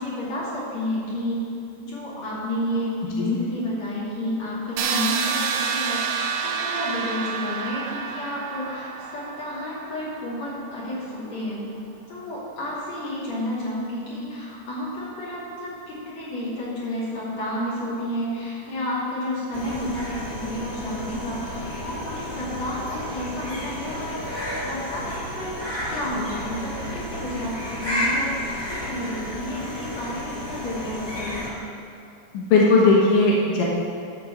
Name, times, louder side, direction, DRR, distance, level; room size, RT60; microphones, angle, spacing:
voice 1, 0.0-1.4 1.8-11.6 12.1-25.5 25.9-31.5, left 1 dB, 55° left, -8 dB, 3.9 m, -31 dB
sound 1, 4.8-10.6, right 6 dB, 75° right, 2.0 m, -28 dB
sound 2, 19.5-31.5, left 1 dB, 15° left, 0.9 m, -32 dB
voice 2, 32.3-33.6, left 3 dB, 90° left, -3 dB, 2.8 m, -18 dB
13.0 x 4.5 x 6.9 m, 2.5 s
omnidirectional pair, 3.7 m